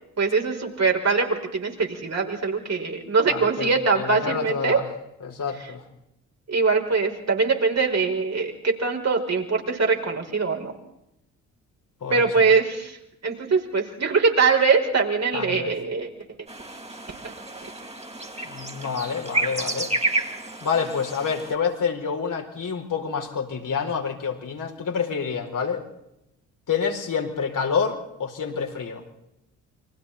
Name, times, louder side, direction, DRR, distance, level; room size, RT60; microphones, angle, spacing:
voice 1, 0.2-4.8 6.5-10.7 12.1-13.0 13.2-16.1, right 4 dB, 40° right, 1 dB, 5.2 m, -22 dB
voice 2, 3.2-4.8 5.2-5.8 12.0-12.5 15.3-15.8 18.4-19.9 20.6-25.8 26.7-29.0, left 6 dB, 50° left, 2 dB, 4.7 m, -28 dB
sound 1, 16.5-21.5, right 2 dB, 15° right, 4.2 m, -30 dB
29.5 x 24.5 x 4.3 m, 0.85 s
hypercardioid pair, 45°, 41 cm